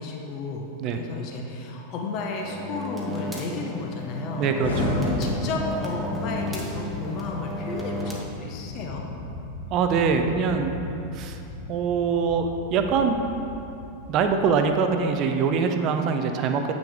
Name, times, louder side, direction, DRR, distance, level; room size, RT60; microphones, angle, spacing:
voice 1, 0.0-0.7 0.9-4.5 4.9-9.1, left 3 dB, 40° left, 0 dB, 0.9 m, -33 dB
sound 1, 2.4-8.2, left 1 dB, 10° right, 1.2 m, -34 dB
voice 2, 4.4-5.0 9.7-10.7 11.1-11.4 11.7-13.2 14.1-16.8, right 5 dB, 35° right, 6 dB, 0.6 m, -23 dB
Explosion, 4.6-14.5, left 2 dB, 80° left, 1.7 m, -34 dB
8.4 x 6.1 x 3.7 m, 2.8 s
figure-of-eight pair, 90°, 0 cm